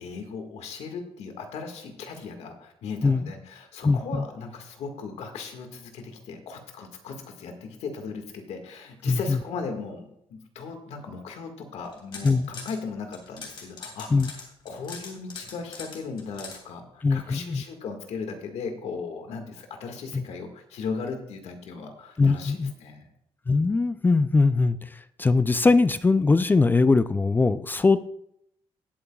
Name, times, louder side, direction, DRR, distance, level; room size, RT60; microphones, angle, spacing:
voice 1, 0.0-23.1, left 5 dB, 80° left, 5 dB, 1.8 m, -37 dB
voice 2, 3.8-4.2 9.1-9.4 12.2-12.5 14.1-14.3 17.0-17.6 20.1-20.2 22.2-22.7 23.5-28.1, left 3 dB, 20° left, 13 dB, 0.4 m, -21 dB
sound 1, 11.8-12.8 13.1-16.6, left 4 dB, 50° left, 2.9 m, -41 dB
18.5 x 8.6 x 2.3 m, 0.74 s
cardioid pair, 120°, 11 cm